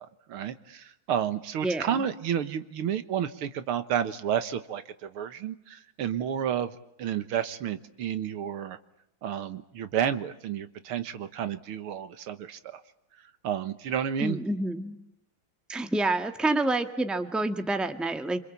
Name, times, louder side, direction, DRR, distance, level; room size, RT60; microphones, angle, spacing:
voice 1, 0.0-6.7 7.0-8.8 9.2-12.8 13.4-14.4, right 9 dB, 90° right, 11 dB, 2.2 m, -31 dB
voice 2, 1.6-2.0 14.2-15.0 15.7-18.4, right 2 dB, ahead, 7 dB, 1.3 m, -28 dB
27.0 x 26.0 x 8.5 m, 0.80 s
omnidirectional pair, 2.3 m